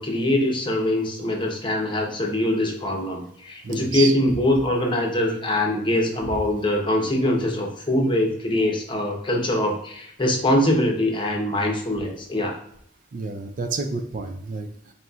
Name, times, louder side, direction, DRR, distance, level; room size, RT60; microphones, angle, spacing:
voice 1, 0.0-12.5, left 1 dB, 25° left, 0 dB, 0.7 m, -23 dB
voice 2, 3.6-4.6 5.3-6.4 13.1-14.9, right 4 dB, 45° right, 6 dB, 0.4 m, -32 dB
4.2 x 4.0 x 2.3 m, 0.71 s
head